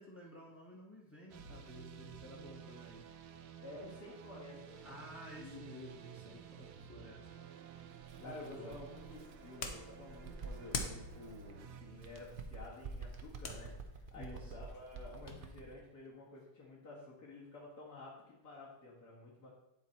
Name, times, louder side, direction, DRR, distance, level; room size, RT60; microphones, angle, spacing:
voice 1, 0.0-3.1 4.8-7.3 8.2-8.8 14.1-14.5, left 1 dB, 10° left, -7 dB, 0.8 m, -52 dB
sound 1, 1.3-13.2, right 8 dB, 80° right, 1.2 m, -53 dB
voice 2, 3.6-5.1 5.4-5.6 8.2-13.7 14.1-19.6, left 2 dB, 75° left, -6 dB, 2.3 m, -51 dB
Bird, 8.0-11.6 12.0-15.8, right 4 dB, 65° right, 0.5 m, -49 dB
sound 2, 8.7-15.5, left 4 dB, 50° left, 0.9 m, -47 dB
9.3 x 4.1 x 4.4 m, 0.89 s
omnidirectional pair, 1.7 m